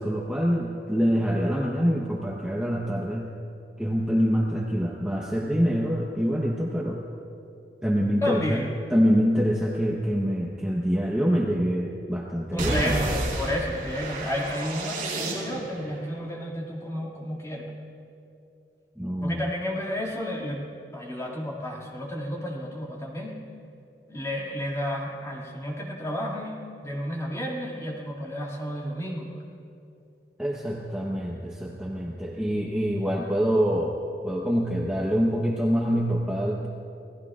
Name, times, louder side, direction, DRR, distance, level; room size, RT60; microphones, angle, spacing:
voice 1, 0.0-3.3 3.8-7.0 7.8-8.6 8.9-12.9 19.0-19.4 30.4-34.0 34.2-36.7, equal, 5° right, -3 dB, 1.0 m, -25 dB
voice 2, 8.2-8.8 12.5-17.7 19.2-20.7 20.9-23.4 24.1-29.4, equal, 20° left, -3 dB, 2.3 m, -31 dB
sound 1, 12.6-15.8, right 1 dB, 50° right, 4.5 m, -30 dB
27.5 x 18.5 x 2.5 m, 2.7 s
head